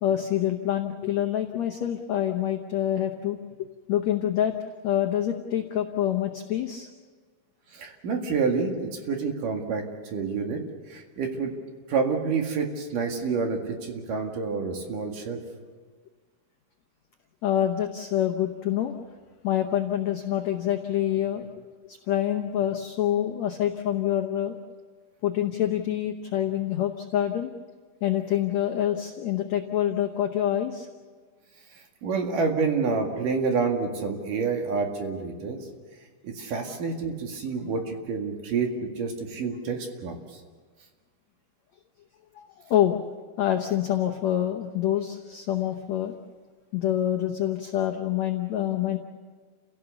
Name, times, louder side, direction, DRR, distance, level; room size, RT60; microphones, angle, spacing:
voice 1, 0.0-3.4 3.9-4.5 4.8-6.9 17.4-18.9 19.4-21.5 21.9-24.5 25.2-27.5 28.0-30.9 42.3-43.0 43.4-46.1 46.7-49.0, left 11 dB, 75° left, 4 dB, 1.6 m, -26 dB
voice 2, 7.7-10.6 10.9-11.5 11.9-15.4 32.0-35.6 36.2-40.2, right 5 dB, 60° right, 3 dB, 3.4 m, -28 dB
29.0 x 17.0 x 7.0 m, 1.5 s
omnidirectional pair, 4.6 m